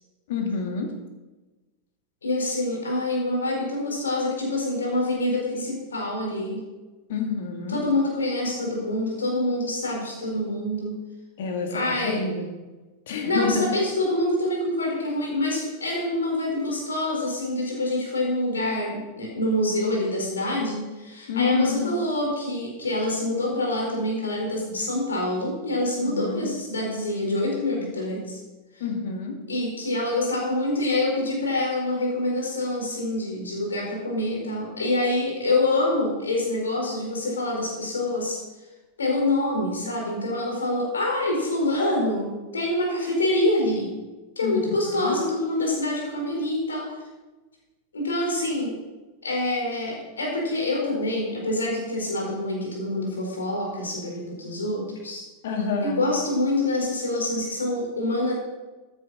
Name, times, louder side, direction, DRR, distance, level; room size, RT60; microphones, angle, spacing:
voice 1, 0.3-0.9 7.1-7.8 11.4-12.5 13.1-13.8 21.3-21.9 26.0-26.5 28.8-29.4 44.4-45.2 55.4-56.0, left 4 dB, 55° left, 3 dB, 2.3 m, -28 dB
voice 2, 2.2-6.6 7.7-11.0 11.7-12.2 13.2-28.4 28.7-28.8 29.5-38.4 39.0-43.9 44.4-46.9 47.9-48.8 49.2-55.2 55.8-58.3, left 1 dB, 70° left, -1 dB, 4.5 m, -26 dB
14.0 x 9.7 x 4.2 m, 1.2 s
figure-of-eight pair, 90°, 0 cm